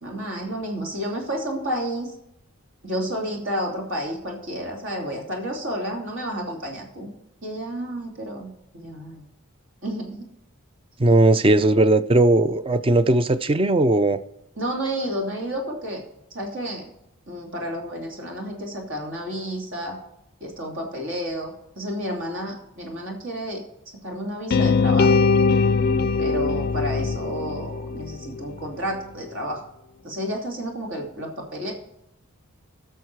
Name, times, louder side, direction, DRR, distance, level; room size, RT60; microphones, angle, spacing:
voice 1, 0.0-2.1 2.8-7.1 7.4-9.2 9.8-10.1 14.6-16.0 16.3-16.8 17.3-20.0 20.4-23.6 24.0-25.2 26.2-29.6 30.0-31.7, equal, 60° right, 2.8 m, -31 dB
voice 2, 11.0-14.2, right 2 dB, 25° right, 0.4 m, -18 dB
sound 1, 24.5-28.6, left 4 dB, 45° left, 0.4 m, -21 dB
15.5 x 6.4 x 4.6 m
head